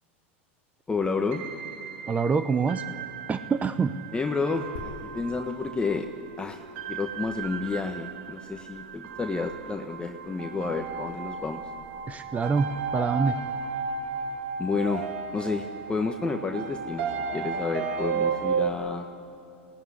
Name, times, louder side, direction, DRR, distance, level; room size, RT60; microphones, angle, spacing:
voice 1, 0.9-1.5 4.1-6.1 6.4-6.6 6.9-11.7 14.6-15.1 15.3-19.1, left 4 dB, 15° left, 3 dB, 1.2 m, -30 dB
sound 1, 1.3-18.7, right 5 dB, 65° right, 1.6 m, -34 dB
voice 2, 2.1-2.8 3.3-3.9 12.1-13.4, right 5 dB, 20° right, 11 dB, 0.8 m, -25 dB
sound 2, 4.8-14.1, left 4 dB, 70° left, 1.9 m, -49 dB
22.5 x 18.0 x 9.8 m, 2.5 s
hypercardioid pair, 105°, 7 cm